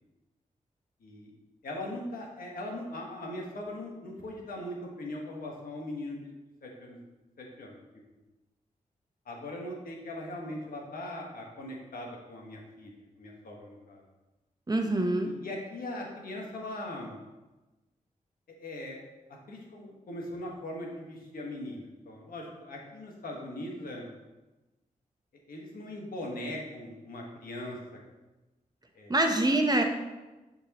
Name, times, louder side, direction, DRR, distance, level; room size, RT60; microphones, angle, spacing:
voice 1, 1.0-1.3 1.6-6.3 6.6-7.0 7.4-7.8 9.2-14.0 15.2-17.2 18.6-19.0 19.5-24.1 25.5-27.8 28.9-29.2, left 1 dB, 85° left, -1 dB, 1.4 m, -40 dB
voice 2, 14.7-15.3 29.1-29.8, right 1 dB, 25° right, 4 dB, 0.9 m, -25 dB
10.0 x 4.5 x 3.0 m, 1.1 s
cardioid pair, 65°, 15 cm